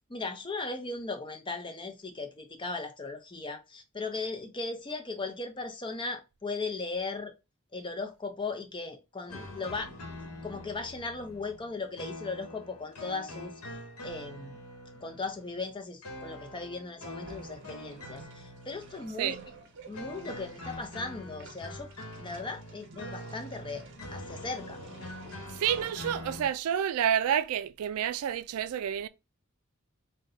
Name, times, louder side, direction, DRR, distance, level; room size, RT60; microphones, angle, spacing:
voice 1, 0.1-7.3 7.7-9.9 10.2-13.5 14.0-14.6 15.0-19.4 19.9-21.9 22.2-23.8 24.1-24.8, left 3 dB, 20° left, 0.6 m, -37 dB
sound 1, 9.3-26.5, left 1 dB, 90° left, 1.1 m, -44 dB
sound 2, 17.2-26.1, right 3 dB, 55° right, 0.7 m, -51 dB
voice 2, 25.5-29.1, right 9 dB, 80° right, 0.3 m, -29 dB
4.0 x 2.2 x 3.8 m
head